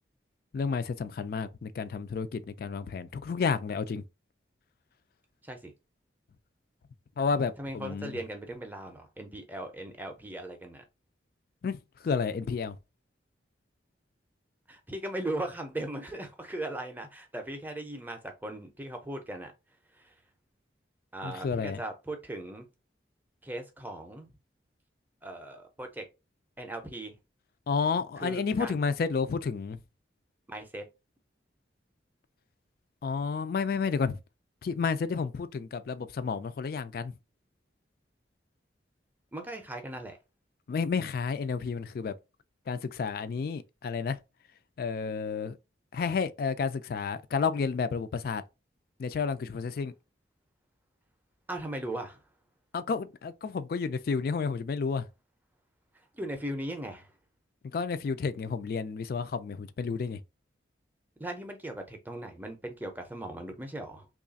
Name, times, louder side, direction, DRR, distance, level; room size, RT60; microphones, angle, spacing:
voice 1, 0.5-4.0 7.2-8.2 11.6-12.8 21.2-21.8 27.7-29.8 33.0-34.2 34.6-37.2 40.7-42.2 42.7-44.2 44.8-45.6 45.9-48.4 49.0-49.9 52.7-55.1 57.7-60.2, left 5 dB, 55° left, 0.3 m, -31 dB
voice 2, 7.6-10.8 14.7-19.5 19.9-20.1 21.1-22.6 23.4-24.3 25.2-26.1 26.6-27.2 28.2-28.8 30.5-30.8 39.3-40.2 51.5-52.2 56.1-57.1 61.2-64.1, right 1 dB, 10° right, 0.5 m, -38 dB
3.1 x 2.4 x 3.9 m
head